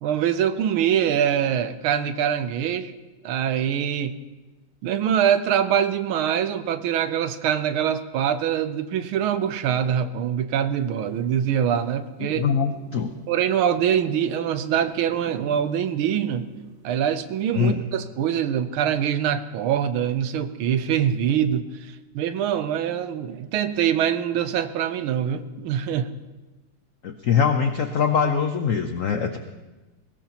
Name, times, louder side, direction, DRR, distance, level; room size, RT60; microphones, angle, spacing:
voice 1, 0.0-2.9 3.2-4.2 4.8-12.4 13.3-16.5 16.8-26.1, right 9 dB, 80° right, 11 dB, 1.6 m, -24 dB
sound 1, 10.8-17.9, right 3 dB, 60° right, 2.3 m, -48 dB
voice 2, 12.2-13.1 17.5-17.8 27.0-29.4, left 6 dB, 75° left, 6 dB, 0.7 m, -23 dB
21.0 x 17.0 x 3.0 m, 1.1 s
omnidirectional pair, 2.3 m